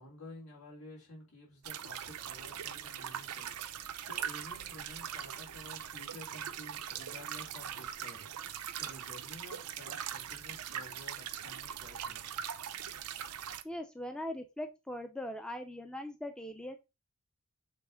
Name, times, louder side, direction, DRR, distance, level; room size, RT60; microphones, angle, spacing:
voice 1, 0.0-12.3, left 1 dB, 75° left, 3.5 m, -52 dB
sound 1, 1.6-13.6, right 9 dB, 90° right, 0.6 m, -41 dB
voice 2, 13.6-16.8, left 1 dB, 5° left, 0.5 m, -40 dB
7.1 x 3.5 x 3.8 m
head